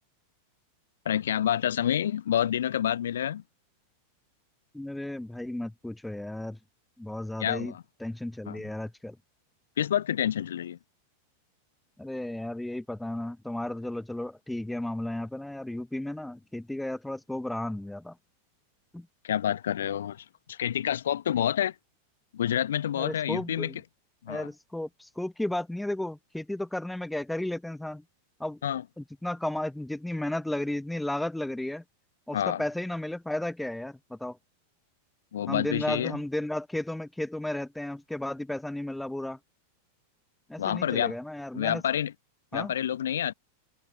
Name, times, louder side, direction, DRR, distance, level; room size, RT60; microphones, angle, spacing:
voice 1, 1.0-3.4 7.4-7.8 8.5-8.6 9.8-10.8 19.2-21.7 22.3-23.7 24.2-24.5 28.6-28.8 32.3-32.6 35.3-36.2 40.6-41.1 41.5-42.1 42.5-43.3, left 10 dB, 65° left, 1.2 m, -28 dB
voice 2, 4.7-6.6 7.0-7.7 8.0-9.2 12.0-18.2 18.9-19.1 22.9-23.8 24.3-28.0 28.4-28.6 29.0-31.8 32.3-34.4 35.5-39.4 40.5-41.8 42.5-42.7, left 1 dB, 5° left, 1.0 m, -34 dB
figure-of-eight pair, 90°, 0 cm